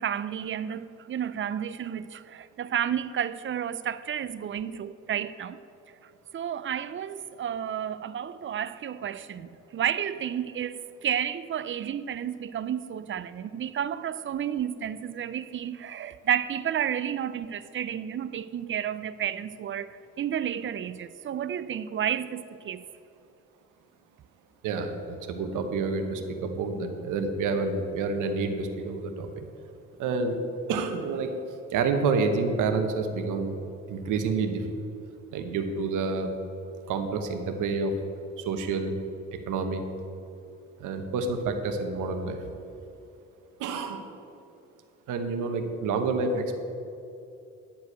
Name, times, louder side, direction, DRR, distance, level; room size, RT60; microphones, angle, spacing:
voice 1, 0.0-5.6 6.3-22.8, right 9 dB, 40° right, 0.5 m, -31 dB
voice 2, 24.6-29.4 30.0-30.4 30.7-31.3 31.7-33.6 33.9-34.7 35.3-36.3 36.9-38.0 38.4-38.9 39.3-39.9 40.8-42.4 43.6-44.1 45.1-46.6, right 4 dB, 85° right, 1.1 m, -28 dB
10.5 x 4.7 x 8.0 m
cardioid pair, 90°, 30 cm